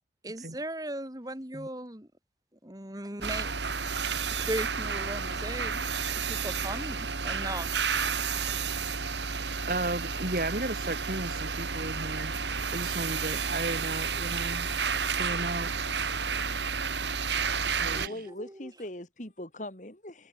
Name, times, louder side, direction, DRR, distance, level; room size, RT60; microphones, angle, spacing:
voice 1, 0.2-2.1 2.6-3.5 4.4-5.8 6.3-7.7 17.9-18.7, right 1 dB, 20° right, 2.7 m, -37 dB
sound 1, 3.2-18.1, right 5 dB, 85° right, 2.9 m, -31 dB
voice 2, 9.7-14.7 15.1-15.7 17.8-18.2, right 2 dB, 55° right, 3.0 m, -34 dB
voice 3, 18.0-20.3, left 1 dB, 45° left, 3.6 m, -41 dB
head